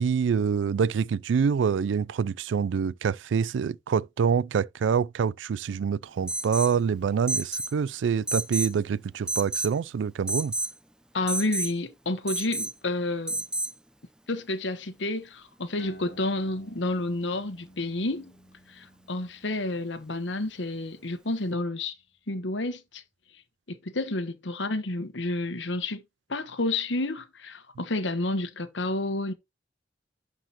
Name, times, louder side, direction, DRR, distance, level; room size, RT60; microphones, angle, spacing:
voice 1, 0.0-10.5, right 6 dB, 90° right, 0.3 m, -26 dB
Alarm, 6.3-6.8 7.3-7.7 8.3-8.8 9.3-9.7 10.3-10.7 11.3-11.7 12.3-12.7 13.3-13.7, right 2 dB, 5° right, 0.6 m, -30 dB
voice 2, 11.1-13.4 14.3-18.3 18.7-21.9 22.3-23.0 23.7-26.0 26.3-29.3, left 2 dB, 90° left, 1.2 m, -30 dB
sound 1, 15.8-22.7, right 1 dB, 60° left, 1.5 m, -52 dB
11.5 x 4.8 x 2.9 m
head